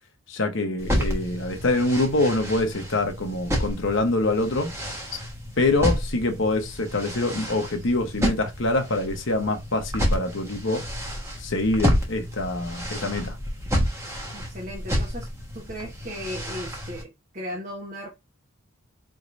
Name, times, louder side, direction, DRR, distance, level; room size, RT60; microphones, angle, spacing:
voice 1, 0.3-4.7 5.6-10.8 11.4-13.4, left 2 dB, 60° left, 1.0 m, -25 dB
sound 1, 0.8-17.0, equal, 15° right, 1.2 m, -30 dB
voice 2, 14.3-15.3 15.5-18.1, equal, 40° right, 1.1 m, -36 dB
4.8 x 3.1 x 2.5 m
head